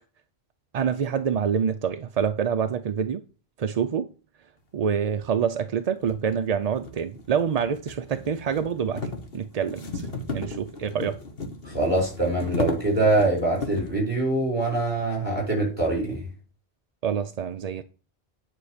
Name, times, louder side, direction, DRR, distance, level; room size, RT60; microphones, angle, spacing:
voice 1, 0.7-3.2 3.6-4.1 4.7-9.1 9.3-10.1 10.3-11.2 17.0-17.8, right 7 dB, 50° right, 0.5 m, -26 dB
sound 1, 5.2-5.3 6.0-14.0, left 2 dB, 65° left, 1.6 m, -35 dB
voice 2, 11.6-16.3, right 2 dB, 25° right, 5.3 m, -24 dB
9.6 x 5.7 x 5.0 m
omnidirectional pair, 1.1 m